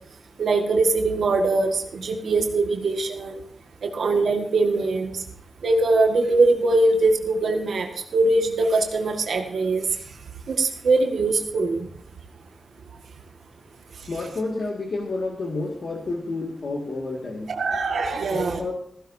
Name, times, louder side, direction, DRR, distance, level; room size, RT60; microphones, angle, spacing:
voice 1, 0.4-3.4 3.8-5.2 5.6-9.8 10.5-11.9 17.5-18.6, right 3 dB, 70° right, 3 dB, 1.7 m, -22 dB
voice 2, 14.1-17.5 18.3-18.7, left 3 dB, 55° left, -1 dB, 2.0 m, -30 dB
16.0 x 15.5 x 2.7 m, 0.66 s
wide cardioid pair, 175°, 0 cm